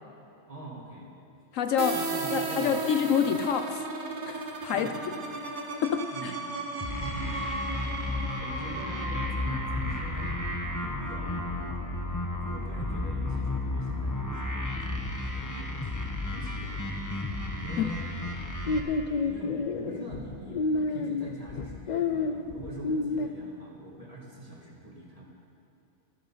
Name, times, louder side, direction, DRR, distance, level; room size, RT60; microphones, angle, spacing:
voice 1, 0.5-1.1 1.9-2.8 4.7-5.1 6.1-7.3 8.4-11.7 12.4-17.0 17.6-18.0 19.2-25.3, right 1 dB, 25° right, -3 dB, 2.1 m, -44 dB
voice 2, 1.5-2.0 2.3-3.8 4.2-4.9 5.8-6.3 17.8-17.9, left 8 dB, 70° left, 9 dB, 1.0 m, -27 dB
sound 1, 1.8-11.4, right 3 dB, 90° right, 1.7 m, -35 dB
sound 2, 6.8-18.8, left 2 dB, 15° left, 1.1 m, -33 dB
sound 3, 18.3-23.3, left 3 dB, 55° left, 0.5 m, -29 dB
13.5 x 12.5 x 5.6 m, 2.9 s
omnidirectional pair, 1.4 m